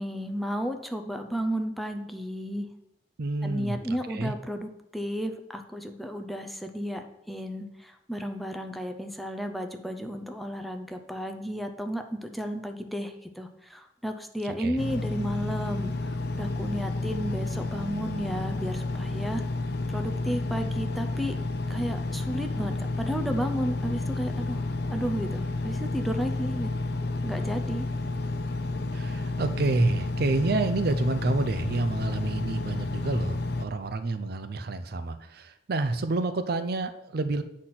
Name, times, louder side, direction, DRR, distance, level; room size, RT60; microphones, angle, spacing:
voice 1, 0.0-2.7 3.4-19.4 19.9-21.4 21.7-26.7 27.2-27.9, equal, ahead, 5 dB, 0.6 m, -33 dB
voice 2, 3.2-3.7 4.1-4.3 14.4-14.8 28.9-37.4, right 3 dB, 60° right, 10 dB, 0.5 m, -29 dB
Engine, 14.8-33.6, left 2 dB, 60° left, 0.6 m, -31 dB
8.0 x 4.2 x 5.8 m, 0.84 s
head